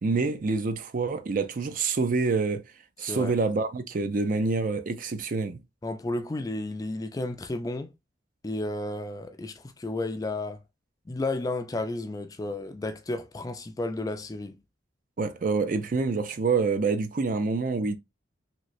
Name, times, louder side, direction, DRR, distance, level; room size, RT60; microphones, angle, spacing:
voice 1, 0.0-2.6 3.0-5.6 15.2-18.0, right 4 dB, 45° right, 0.4 m, -27 dB
voice 2, 3.0-3.3 5.8-7.9 8.4-10.6 11.1-14.6, left 2 dB, 20° left, 0.3 m, -32 dB
3.1 x 3.0 x 2.5 m
head